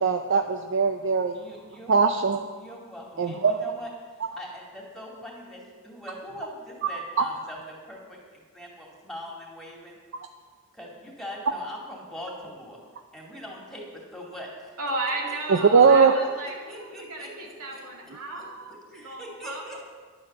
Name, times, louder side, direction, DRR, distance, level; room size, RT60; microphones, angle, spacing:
voice 1, 0.0-1.4 1.9-2.5 3.2-3.6 15.5-16.1, right 5 dB, 60° right, 6 dB, 0.6 m, -20 dB
voice 2, 1.3-1.9 2.5-3.9 4.4-10.0 10.7-12.8 13.1-14.7 15.3-15.4 15.8-15.9 16.2-16.3 16.7-17.8 18.4-18.5 18.9-19.8, equal, ahead, -2 dB, 2.6 m, -42 dB
voice 3, 14.8-19.8, right 2 dB, 80° right, -1 dB, 2.4 m, -34 dB
11.5 x 8.6 x 6.8 m, 1.5 s
head